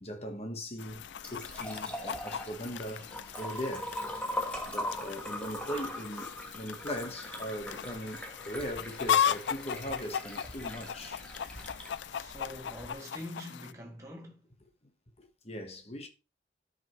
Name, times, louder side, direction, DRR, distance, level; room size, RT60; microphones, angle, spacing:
voice 1, 0.0-3.1 3.4-3.9 4.7-11.2 12.4-12.5 15.2-16.1, equal, 35° left, 1.2 m, -40 dB
Chicken rooster, 0.8-13.7, left 9 dB, 75° left, 0.4 m, -36 dB
Liquid, 0.9-12.9, equal, 5° left, 1.3 m, -41 dB
voice 2, 12.1-14.5, equal, 15° right, 2.0 m, -45 dB
12.5 x 5.3 x 3.1 m
head